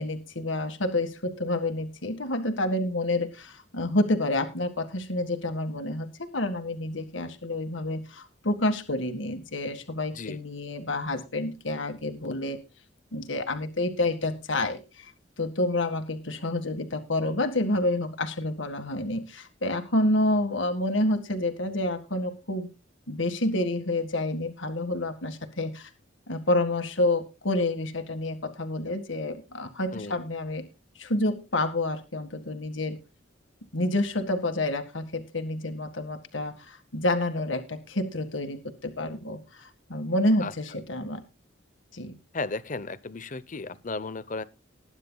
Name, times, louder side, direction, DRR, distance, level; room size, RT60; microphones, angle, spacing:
voice 1, 0.0-12.6 13.1-15.1 15.4-22.7 23.1-25.9 26.3-30.7 31.0-33.0 33.7-41.2 41.9-42.2, left 1 dB, 75° left, 1.9 m, -28 dB
voice 2, 42.3-44.4, left 3 dB, 40° left, 0.9 m, -34 dB
20.0 x 10.0 x 2.4 m
head